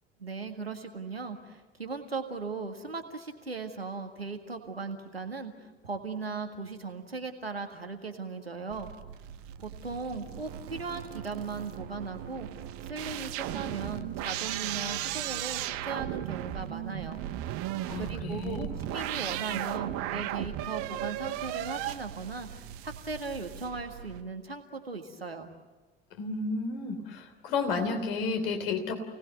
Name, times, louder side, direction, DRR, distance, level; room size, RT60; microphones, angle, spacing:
voice 1, 0.2-8.9 9.6-17.2 18.0-25.5, right 4 dB, 85° right, 5 dB, 1.9 m, -38 dB
sound 1, 8.7-24.2, right 13 dB, 50° right, 1.1 m, -36 dB
voice 2, 17.9-18.7 26.2-28.9, left 4 dB, 65° left, 5 dB, 3.4 m, -32 dB
28.5 x 19.0 x 8.0 m, 1.3 s
figure-of-eight pair, 65°, 30 cm